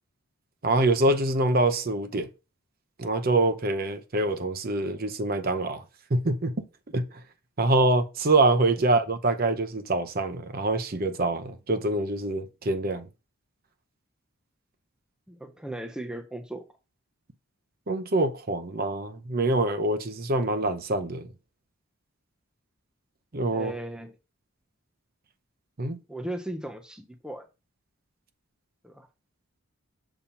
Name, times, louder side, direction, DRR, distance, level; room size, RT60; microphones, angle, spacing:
voice 1, 0.6-2.3 3.0-5.8 6.1-6.5 6.9-7.1 7.6-13.1 17.9-21.3 23.3-23.7 25.8-26.0, right 2 dB, 40° right, 0.7 m, -25 dB
voice 2, 15.3-16.6 23.5-24.2 26.1-27.5 28.8-29.1, right 1 dB, 5° right, 0.5 m, -37 dB
7.0 x 2.8 x 5.6 m
head